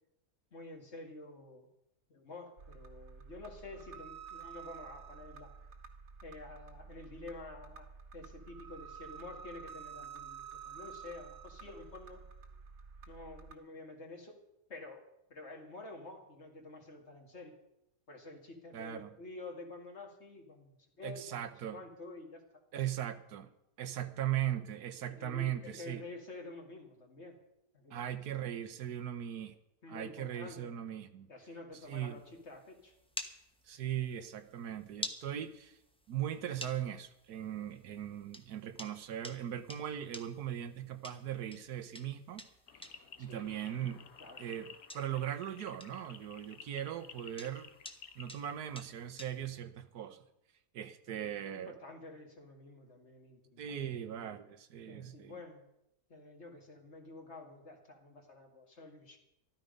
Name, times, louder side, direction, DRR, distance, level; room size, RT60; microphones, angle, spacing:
voice 1, 0.5-1.7 2.1-5.5 6.2-7.9 8.1-12.2 13.1-14.4 14.7-15.0 15.3-17.5 18.1-20.7 21.0-21.4 21.7-22.4 25.2-27.4 27.7-28.1 29.8-30.7 31.3-32.9 43.2-43.6 44.2-44.4 51.5-54.4 54.9-55.6 56.1-59.2, left 2 dB, 45° left, 2.3 m, -49 dB
sound 1, 2.6-13.5, right 6 dB, 65° right, 1.8 m, -50 dB
voice 2, 18.7-19.1 21.0-21.8 22.7-23.5 23.8-26.0 27.9-29.6 29.9-31.3 31.8-32.2 33.7-35.8 36.1-42.5 42.8-42.9 43.2-44.0 44.4-47.7 48.2-50.2 50.7-51.8 53.6-55.4, right 11 dB, 85° right, 1.4 m, -39 dB
sound 2, 31.7-49.6, equal, 5° left, 0.8 m, -51 dB
sound 3, 42.7-48.6, left 8 dB, 70° left, 1.4 m, -54 dB
13.5 x 13.0 x 5.2 m
omnidirectional pair, 1.6 m